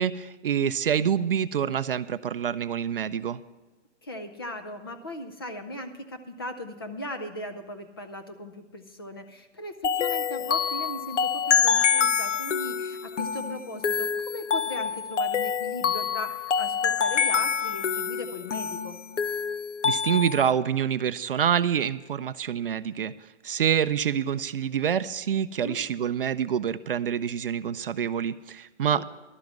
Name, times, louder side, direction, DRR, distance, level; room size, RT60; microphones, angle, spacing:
voice 1, 0.0-3.4 19.8-23.1 23.4-29.0, right 8 dB, 50° right, 14 dB, 0.4 m, -26 dB
voice 2, 4.0-19.0 25.6-25.8 28.9-29.0, left 1 dB, 20° left, 6 dB, 0.5 m, -38 dB
sound 1, 9.8-20.5, left 7 dB, 75° left, 0.7 m, -26 dB
12.0 x 9.3 x 5.9 m, 1.2 s
hypercardioid pair, 150°, 37 cm